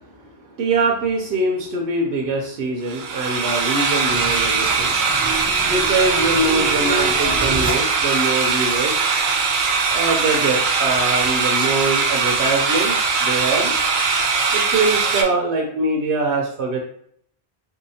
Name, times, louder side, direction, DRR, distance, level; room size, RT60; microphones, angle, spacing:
voice 1, 0.6-4.9 5.6-9.0 9.9-13.7 14.5-16.8, right 3 dB, 85° right, 1 dB, 0.9 m, -23 dB
sound 1, 2.9-15.2, right 4 dB, 60° right, 0.6 m, -20 dB
sound 2, 3.9-8.4, right 2 dB, 15° left, 0.4 m, -30 dB
3.7 x 2.7 x 2.7 m, 0.67 s
omnidirectional pair, 1.1 m